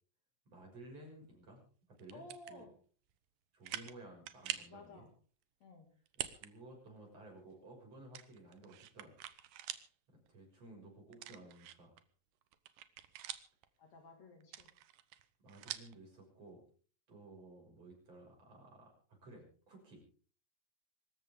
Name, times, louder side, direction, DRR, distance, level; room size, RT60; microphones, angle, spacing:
voice 1, 0.5-1.6 2.0-2.7 3.5-5.1 6.3-9.1 10.1-12.0 15.4-16.6 17.1-20.0, right 2 dB, 45° right, 0 dB, 7.5 m, -55 dB
sound 1, 2.0-2.6 3.1-3.2 3.6-4.0 4.3-4.8 6.1-6.5 6.9-7.0 8.1-9.9 10.3-10.4 11.1-12.0 12.4-13.7 14.4-16.0, right 13 dB, 80° right, 2.7 m, -45 dB
voice 2, 2.1-2.7 4.7-5.1 5.6-5.9 13.8-14.7, left 2 dB, 55° left, 4 dB, 3.4 m, -54 dB
25.0 x 13.5 x 3.7 m, 0.43 s
omnidirectional pair, 4.0 m